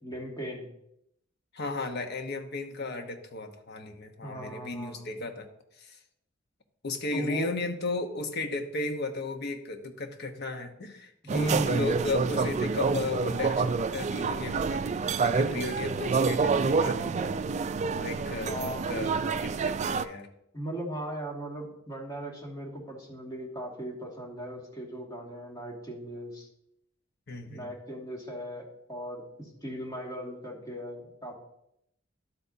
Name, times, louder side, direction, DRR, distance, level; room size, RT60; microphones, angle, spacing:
voice 1, 0.0-0.7 4.2-5.1 7.1-7.5 11.2-11.8 18.4-18.9 20.5-26.5 27.5-31.4, equal, 20° left, -1 dB, 2.0 m, -37 dB
voice 2, 1.5-5.5 5.8-6.0 6.8-17.5 18.0-20.3 27.3-27.7, left 2 dB, 55° left, 5 dB, 1.0 m, -35 dB
sound 1, 11.3-20.0, right 4 dB, 35° right, 0.3 m, -28 dB
12.0 x 8.1 x 2.7 m, 0.77 s
head